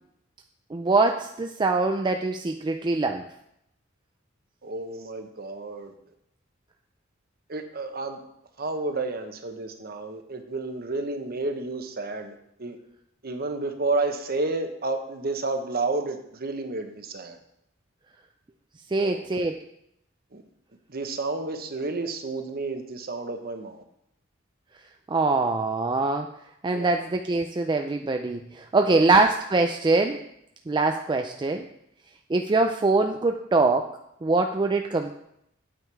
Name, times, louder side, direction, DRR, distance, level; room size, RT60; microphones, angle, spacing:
voice 1, 0.7-3.3 18.9-19.6 25.1-26.3 26.6-30.2 30.7-31.7 32.3-35.2, right 3 dB, 25° right, 5 dB, 0.4 m, -23 dB
voice 2, 4.6-5.9 7.5-8.2 8.6-12.3 12.6-12.8 13.2-17.4 19.0-19.2 20.3-20.4 20.9-23.8 26.7-27.0 28.8-29.1, right 3 dB, 50° right, 6 dB, 1.1 m, -31 dB
8.8 x 7.3 x 4.7 m, 0.77 s
head